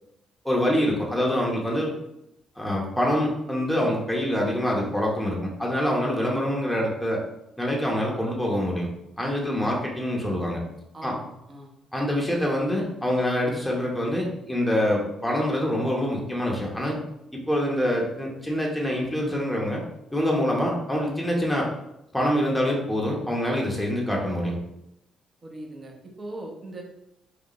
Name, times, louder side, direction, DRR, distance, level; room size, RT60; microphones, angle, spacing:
voice 1, 0.4-1.9 2.6-7.2 7.6-8.9 9.2-10.6 11.0-11.2 11.9-17.0 17.5-19.8 20.1-21.7 22.1-24.6, equal, 5° left, -2 dB, 0.9 m, -25 dB
voice 2, 10.9-11.7 25.4-26.8, right 1 dB, 35° right, 0 dB, 1.0 m, -40 dB
4.8 x 2.4 x 3.1 m, 0.84 s
cardioid pair, 90°, 0 cm